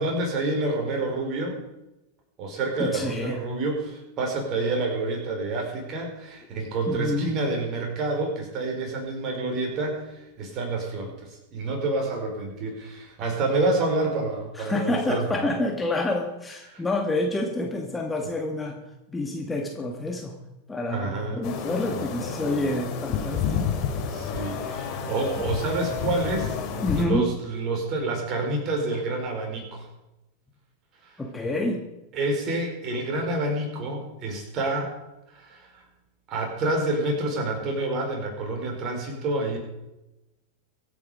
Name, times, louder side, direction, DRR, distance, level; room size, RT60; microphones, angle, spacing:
voice 1, 0.0-1.6 2.4-15.3 16.7-16.8 20.9-21.4 24.1-26.6 27.0-29.9 31.0-31.1 31.4-31.5 32.1-34.9 35.3-35.8 36.3-39.6, right 2 dB, 35° right, 2 dB, 5.0 m, -28 dB
voice 2, 2.8-3.4 6.9-7.3 14.5-18.8 19.1-20.3 20.7-23.8 26.8-27.3 31.2-31.8, left 2 dB, 10° left, 1 dB, 2.0 m, -28 dB
sound 1, 21.4-27.0, left 7 dB, 40° left, 2.9 m, -30 dB
24.5 x 9.1 x 5.1 m, 0.96 s
figure-of-eight pair, 90°, 0 cm